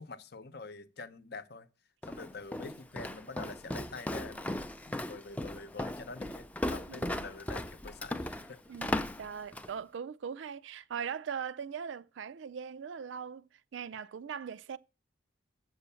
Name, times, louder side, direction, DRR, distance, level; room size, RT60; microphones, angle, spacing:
voice 1, 0.0-1.7 2.1-4.5 4.9-8.6, left 3 dB, 55° left, 0.8 m, -46 dB
Walk footsteps, 2.0-9.8, left 1 dB, 5° left, 0.5 m, -37 dB
voice 2, 6.9-7.3 8.7-14.8, right 7 dB, 70° right, 0.4 m, -40 dB
8.1 x 6.3 x 6.9 m
head